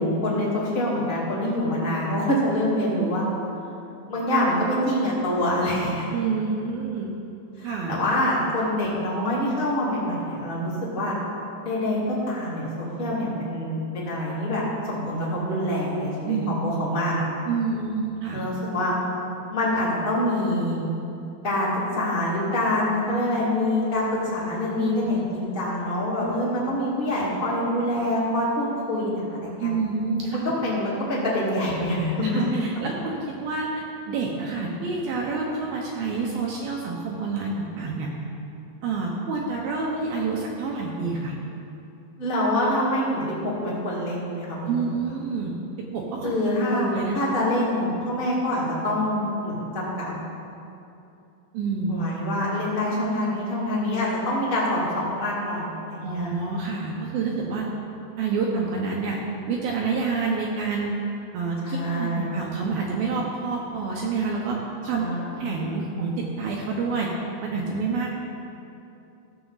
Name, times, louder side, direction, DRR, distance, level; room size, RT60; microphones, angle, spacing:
voice 1, 0.0-3.2 4.1-6.0 7.6-11.1 11.6-12.0 12.3-17.2 18.3-18.9 19.5-20.8 21.4-29.7 30.2-32.3 42.2-44.7 46.2-50.1 51.9-56.3 61.6-62.3 64.9-65.6, left 1 dB, 25° left, -7 dB, 1.2 m, -25 dB
voice 2, 6.1-7.1 7.6-8.0 16.3-16.5 17.5-18.4 29.6-30.4 32.3-38.1 38.8-41.4 44.7-46.3 46.7-47.2 51.5-52.0 56.0-57.7 58.2-59.2 59.5-61.0 61.3-65.0 65.4-67.1 67.4-68.1, right 4 dB, 75° right, -2 dB, 2.3 m, -28 dB
15.5 x 7.1 x 4.0 m, 2.8 s
omnidirectional pair, 5.1 m